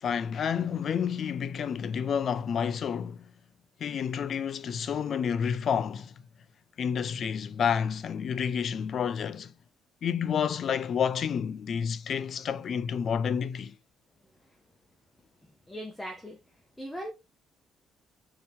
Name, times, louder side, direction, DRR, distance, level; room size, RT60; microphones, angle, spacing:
voice 1, 0.0-3.2 3.8-6.1 6.8-9.5 10.0-13.7, left 7 dB, 45° left, 0.3 m, -29 dB
voice 2, 15.4-16.4 16.8-17.1, equal, 10° left, 0.6 m, -39 dB
2.8 x 2.7 x 3.4 m
cardioid pair, 150°, 0 cm